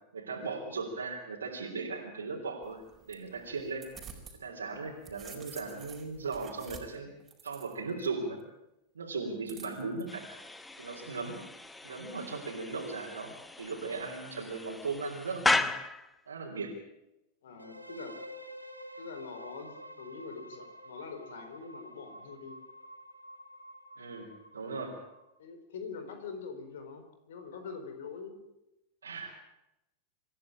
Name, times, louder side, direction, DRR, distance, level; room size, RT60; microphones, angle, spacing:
voice 1, 0.1-2.8 3.1-3.8 4.4-7.1 7.4-8.4 9.0-10.2 10.8-11.4 11.8-15.7 16.3-16.7 24.0-24.9 29.0-29.3, right 4 dB, 70° right, -2 dB, 3.6 m, -37 dB
sound 1, 2.6-4.4 4.8-8.1 9.5-10.0, right 6 dB, 20° right, 4.6 m, -50 dB
sound 2, 10.1-16.2, left 2 dB, 10° left, 1.1 m, -35 dB
voice 2, 17.4-18.2 19.0-22.6 25.4-28.4, left 5 dB, 60° left, 7 dB, 4.1 m, -44 dB
sound 3, 17.6-25.4, equal, 85° right, 1.8 m, -49 dB
26.5 x 15.0 x 8.8 m, 0.93 s
figure-of-eight pair, 90°, 0 cm